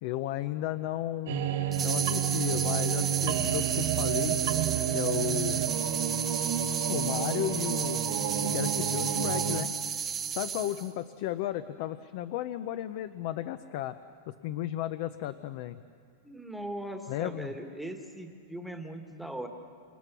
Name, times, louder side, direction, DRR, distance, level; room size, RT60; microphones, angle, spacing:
voice 1, 0.0-4.4 4.9-5.6 6.9-8.0 8.4-9.7 10.3-14.0 14.3-15.8 17.1-17.5, left 13 dB, 45° left, 12 dB, 0.7 m, -34 dB
sound 1, 1.3-9.6, right 9 dB, 60° right, 1.8 m, -30 dB
sound 2, 1.7-10.9, right 7 dB, 15° right, 0.9 m, -33 dB
voice 2, 16.2-19.5, right 1 dB, ahead, 4 dB, 1.5 m, -39 dB
28.5 x 27.5 x 6.1 m, 2.2 s
supercardioid pair, 170°, 0 cm